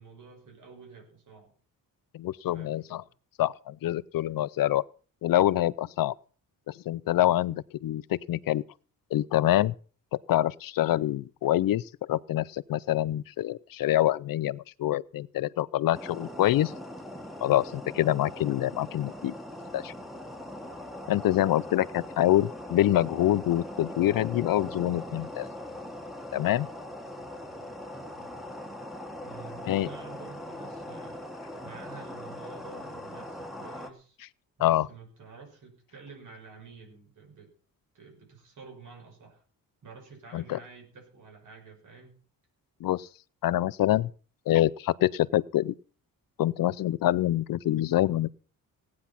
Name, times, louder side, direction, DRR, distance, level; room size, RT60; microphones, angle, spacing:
voice 1, 0.0-1.5 2.5-3.1 28.2-28.4 29.2-31.2 31.6-34.2 34.6-37.5 37.9-39.4 39.8-42.1, right 4 dB, 60° right, 6.1 m, -49 dB
voice 2, 2.1-3.0 3.4-4.8 5.2-6.2 6.7-8.6 9.1-9.7 10.1-16.7 17.4-19.3 19.7-19.9 21.1-25.5 26.3-26.7 29.6-29.9 34.6-34.9 40.3-40.6 42.8-43.1 43.4-44.1 44.5-45.7 46.4-48.3, left 13 dB, 75° left, 0.6 m, -26 dB
sound 1, 15.9-33.9, left 1 dB, ahead, 1.5 m, -41 dB
17.5 x 9.6 x 5.8 m
wide cardioid pair, 180°, 34 cm